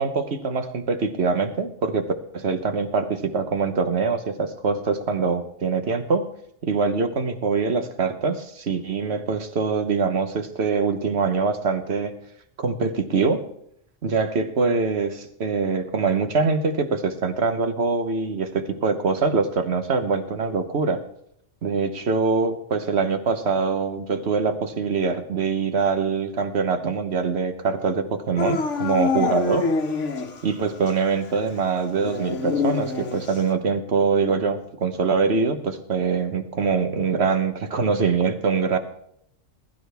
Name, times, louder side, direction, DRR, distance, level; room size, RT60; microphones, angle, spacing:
voice 1, 0.0-6.3 6.6-12.1 12.6-13.4 14.0-21.0 21.6-29.7 30.4-38.8, right 4 dB, 55° right, 9 dB, 1.4 m, -24 dB
Dog / Siren, 28.4-30.5 30.9-31.0 32.0-33.5, left 5 dB, 65° left, 1.5 m, -26 dB
20.5 x 12.0 x 3.5 m, 0.72 s
omnidirectional pair, 1.4 m